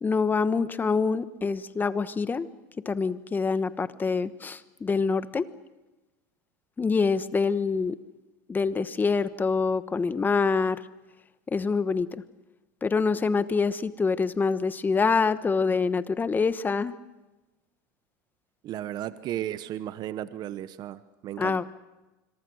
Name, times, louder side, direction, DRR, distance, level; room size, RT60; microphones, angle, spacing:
voice 1, 0.0-2.5 2.8-5.5 6.8-8.0 8.5-10.8 11.5-12.2 12.8-16.9 21.4-21.6, left 4 dB, 20° left, 14 dB, 1.2 m, -25 dB
voice 2, 18.6-21.6, right 12 dB, 45° right, 14 dB, 1.0 m, -34 dB
25.5 x 23.5 x 6.4 m, 1.1 s
supercardioid pair, 110°, 10 cm